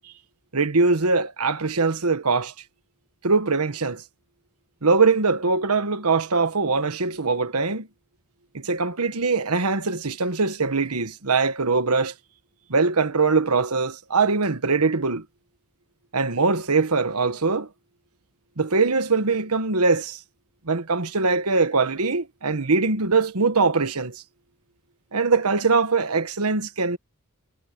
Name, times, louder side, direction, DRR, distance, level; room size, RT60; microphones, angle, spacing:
voice 1, 0.5-2.5 3.2-4.0 4.8-7.9 8.5-12.1 12.7-15.2 16.1-17.7 18.6-20.2 20.6-24.2 25.1-27.0, right 4 dB, 85° right, 1.4 m, -22 dB
head